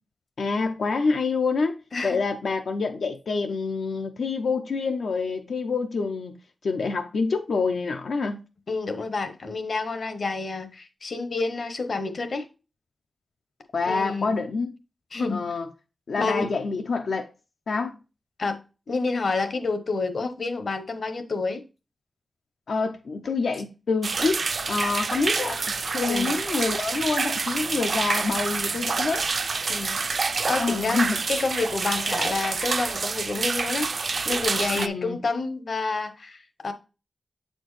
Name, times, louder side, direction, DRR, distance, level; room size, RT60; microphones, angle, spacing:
voice 1, 0.4-8.4 13.7-14.7 15.3-15.7 16.1-17.3 17.7-18.0 22.7-29.2 30.5-31.2 34.7-35.2, left 4 dB, 90° left, 0.5 m, -27 dB
voice 2, 8.7-12.5 13.9-14.4 15.1-15.5 16.2-16.4 18.4-18.6 18.9-21.6 26.1-26.4 29.7-31.0 31.3-36.7, left 3 dB, 60° left, 0.8 m, -29 dB
sound 1, 24.0-34.9, right 4 dB, 60° right, 0.3 m, -27 dB
7.7 x 4.3 x 3.1 m
wide cardioid pair, 125°, 0 cm